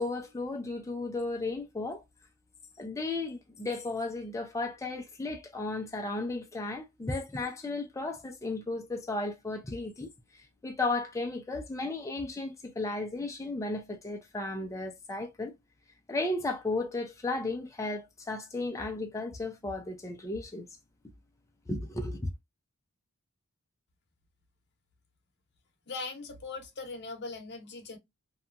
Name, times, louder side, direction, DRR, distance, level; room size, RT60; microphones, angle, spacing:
voice 1, 0.0-2.0 2.8-10.1 10.6-15.5 16.1-20.7 21.7-22.3, left 2 dB, 15° left, 0.4 m, -34 dB
voice 2, 25.9-28.0, left 3 dB, 50° left, 0.8 m, -40 dB
2.8 x 2.2 x 2.4 m
head